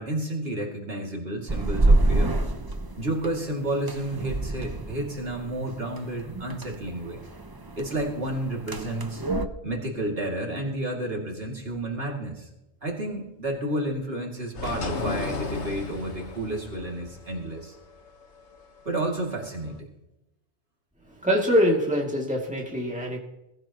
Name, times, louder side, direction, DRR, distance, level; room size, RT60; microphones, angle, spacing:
voice 1, 0.0-2.4 3.0-7.3 7.8-9.2 9.6-12.5 12.8-17.8 18.8-19.9, right 1 dB, 60° right, -1 dB, 2.8 m, -31 dB
sound 1, 1.5-9.5, right 2 dB, 25° right, 0.7 m, -27 dB
sound 2, 14.5-19.8, left 4 dB, 80° left, 1.6 m, -35 dB
Boom, 14.6-17.6, left 1 dB, 60° left, 2.7 m, -42 dB
voice 2, 21.1-23.2, equal, 5° right, -2 dB, 2.4 m, -24 dB
22.0 x 14.5 x 3.0 m, 0.92 s
omnidirectional pair, 1.2 m